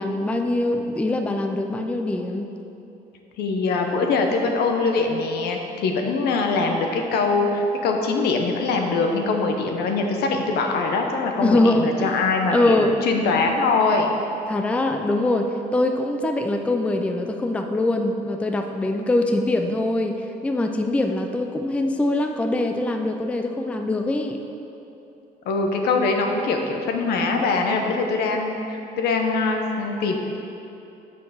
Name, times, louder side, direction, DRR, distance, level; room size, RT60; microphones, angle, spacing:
voice 1, 0.0-2.5 11.4-12.2 12.5-13.0 14.5-24.4, left 2 dB, 5° left, 5 dB, 0.3 m, -23 dB
voice 2, 3.4-14.1 25.5-30.2, left 3 dB, 75° left, 3 dB, 0.8 m, -23 dB
5.5 x 4.5 x 6.4 m, 2.8 s
cardioid pair, 110°, 17 cm